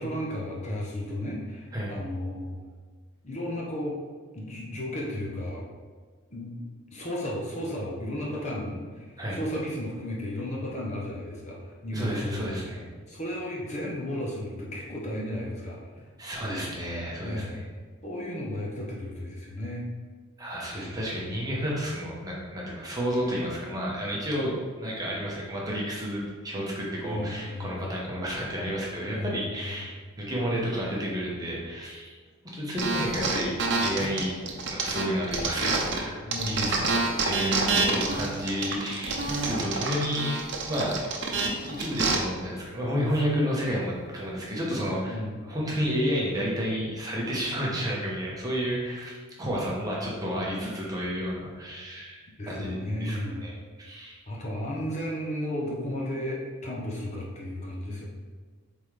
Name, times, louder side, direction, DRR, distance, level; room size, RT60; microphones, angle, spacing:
voice 1, 0.0-2.6 3.2-4.0 4.3-5.6 6.3-6.6 6.9-12.5 13.1-16.1 17.2-17.6 18.0-19.9 27.0-27.8 29.1-29.8 36.3-36.8 45.1-45.4 46.7-46.8 52.4-53.4 54.3-58.1, left 1 dB, 30° left, -3 dB, 0.9 m, -34 dB
voice 2, 11.9-12.9 16.2-17.6 20.4-32.2 32.5-33.5 33.8-34.4 34.7-40.9 41.4-54.2, equal, 15° right, -4 dB, 1.1 m, -31 dB
sound 1, 32.8-36.0 36.3-42.1, right 3 dB, 55° right, 0.8 m, -27 dB
Speech, 37.6-37.7 42.9-43.5 44.7-45.0, left 1 dB, 45° left, 0.5 m, -39 dB
8.0 x 3.7 x 3.4 m, 1.5 s
head